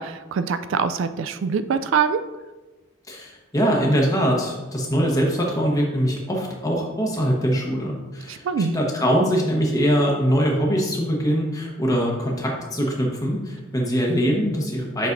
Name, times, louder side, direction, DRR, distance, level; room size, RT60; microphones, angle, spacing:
voice 1, 0.0-2.2 8.3-8.7, right 6 dB, 65° right, 11 dB, 0.3 m, -24 dB
voice 2, 3.1-15.1, equal, 15° left, -1 dB, 1.1 m, -22 dB
8.2 x 5.9 x 2.6 m, 1.2 s
head